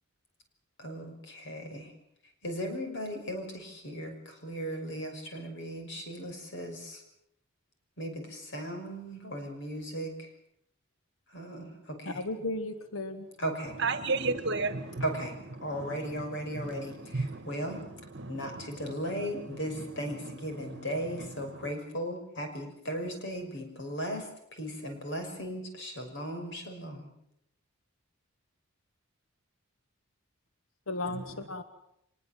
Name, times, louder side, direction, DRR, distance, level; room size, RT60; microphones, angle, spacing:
voice 1, 0.8-1.9 2.4-7.0 8.0-10.3 11.3-12.2 13.4-13.8 15.0-15.4 15.6-17.8 18.3-27.1, equal, 60° left, 6.0 m, -37 dB
voice 2, 12.0-13.3 30.9-31.6, left 2 dB, 85° left, 1.6 m, -35 dB
voice 3, 13.8-15.1 15.6-16.1 16.5-17.8 18.1-18.9 19.8-19.9 20.6-21.3 21.6-21.7 31.1-31.5, right 3 dB, 60° right, 1.7 m, -34 dB
24.0 x 21.0 x 7.6 m
head